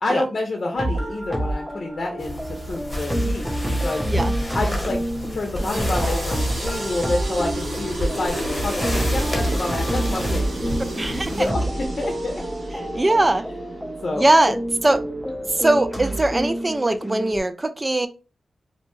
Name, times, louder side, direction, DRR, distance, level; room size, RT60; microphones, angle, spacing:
voice 1, 0.0-4.0 4.5-5.0 5.3-12.4 14.0-14.3, left 2 dB, 60° left, 1 dB, 0.6 m, -28 dB
sound 1, 0.7-17.4, right 1 dB, ahead, 0.7 m, -28 dB
sound 2, 2.2-11.5, equal, 20° left, 1.1 m, -31 dB
sound 3, 5.6-16.6, right 1 dB, 70° right, 0.9 m, -34 dB
voice 2, 11.0-11.3 12.9-13.4 14.2-14.6 14.8-15.0 15.6-18.1, right 2 dB, 30° right, 11 dB, 0.3 m, -20 dB
2.6 x 2.1 x 3.0 m, 0.33 s
cardioid pair, 60°, 0 cm